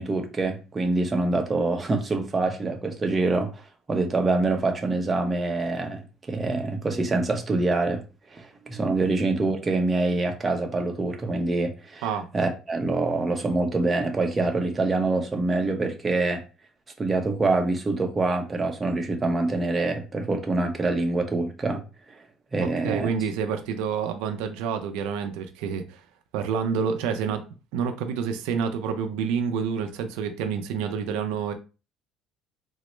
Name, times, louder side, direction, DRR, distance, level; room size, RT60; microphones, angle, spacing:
voice 1, 0.0-3.6 3.9-8.0 8.3-12.1 12.3-16.4 17.0-21.8 22.5-23.1, right 2 dB, 20° right, 0.7 m, -25 dB
voice 2, 22.6-26.0 26.3-27.5 27.7-31.5, right 6 dB, 90° right, 0.4 m, -28 dB
3.8 x 2.1 x 3.1 m
cardioid pair, 115°, 0 cm